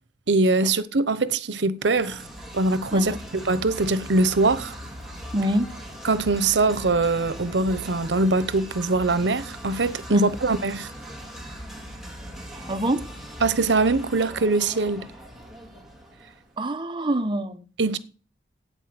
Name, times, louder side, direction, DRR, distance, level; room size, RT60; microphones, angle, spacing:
voice 1, 0.3-2.2 2.5-3.1 3.5-4.7 6.0-10.9 13.4-15.1 17.8-18.0, right 3 dB, 85° right, 0.9 m, -22 dB
sound 1, 1.8-16.5, equal, ahead, 2.4 m, -40 dB
voice 2, 5.3-5.7 10.1-10.2 12.7-13.0 16.6-17.6, right 1 dB, 30° right, 1.0 m, -25 dB
10.0 x 8.4 x 7.7 m
head